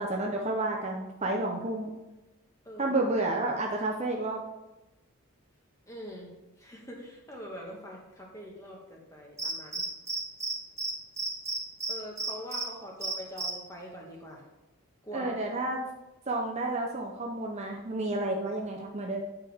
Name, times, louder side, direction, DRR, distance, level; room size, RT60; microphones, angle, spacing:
voice 1, 0.0-1.9 2.8-4.4 15.1-15.8 16.3-19.2, right 2 dB, 30° right, 0 dB, 0.6 m, -30 dB
voice 2, 2.6-3.0 5.9-6.3 6.6-9.8 11.9-14.4 15.0-15.4, equal, 15° left, -1 dB, 1.3 m, -43 dB
Cricket, 9.4-10.5 10.8-10.9 11.2-12.6 13.0-13.5, right 3 dB, 15° right, 1.1 m, -32 dB
9.8 x 4.6 x 3.5 m, 1.0 s
head